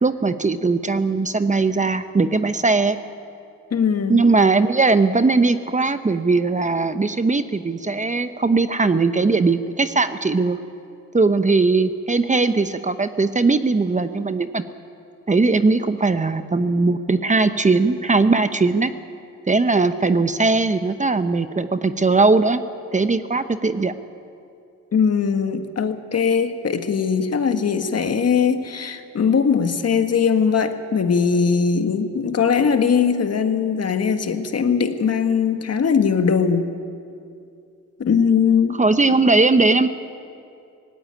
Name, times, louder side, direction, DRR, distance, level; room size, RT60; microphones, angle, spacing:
voice 1, 0.0-3.0 4.1-10.6 11.1-14.6 15.3-18.9 19.5-22.6 22.9-23.9 38.8-39.9, right 3 dB, 25° right, 10 dB, 0.9 m, -19 dB
voice 2, 3.7-4.2 24.9-36.7 38.0-38.8, left 6 dB, 50° left, 7 dB, 1.6 m, -20 dB
18.0 x 16.5 x 9.9 m, 2.5 s
cardioid pair, 80°, 32 cm